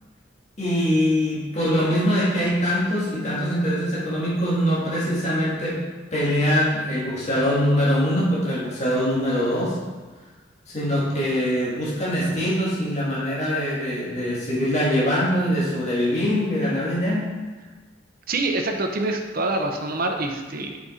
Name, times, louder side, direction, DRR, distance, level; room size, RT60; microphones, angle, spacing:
voice 1, 0.6-5.8 6.1-9.8 10.7-17.3, equal, 40° left, -7 dB, 1.9 m, -23 dB
voice 2, 18.3-20.8, right 2 dB, 55° right, 4 dB, 0.8 m, -25 dB
7.3 x 5.2 x 4.3 m, 1.4 s
head